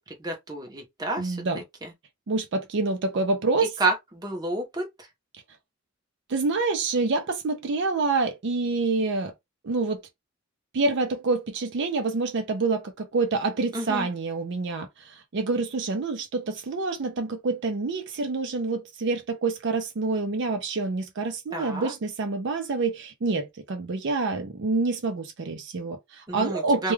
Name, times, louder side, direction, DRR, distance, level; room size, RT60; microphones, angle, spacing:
voice 1, 0.2-1.4 1.8-1.9 3.8-4.9 13.7-14.1 21.5-21.9 26.3-26.9, right 2 dB, 20° right, 0.7 m, -30 dB
voice 2, 1.2-1.6 2.3-3.7 6.3-9.3 9.6-10.0 10.7-26.9, right 3 dB, 55° right, 0.4 m, -27 dB
2.2 x 2.2 x 3.1 m
head